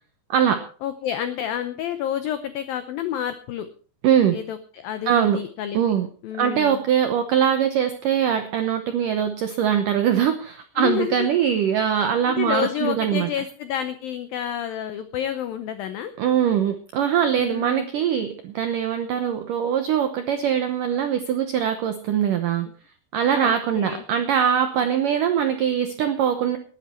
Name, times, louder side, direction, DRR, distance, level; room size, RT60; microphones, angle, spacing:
voice 1, 0.3-0.6 4.0-4.4 5.1-5.4 5.7-6.1 6.4-13.3 16.2-22.7 23.1-26.6, right 9 dB, 85° right, 8 dB, 1.9 m, -22 dB
voice 2, 0.8-3.7 4.3-5.8 6.2-6.8 10.8-11.3 12.0-16.1 17.4-17.9 23.3-24.0, left 10 dB, 85° left, 10 dB, 2.0 m, -29 dB
19.5 x 10.5 x 4.5 m, 0.40 s
omnidirectional pair, 5.3 m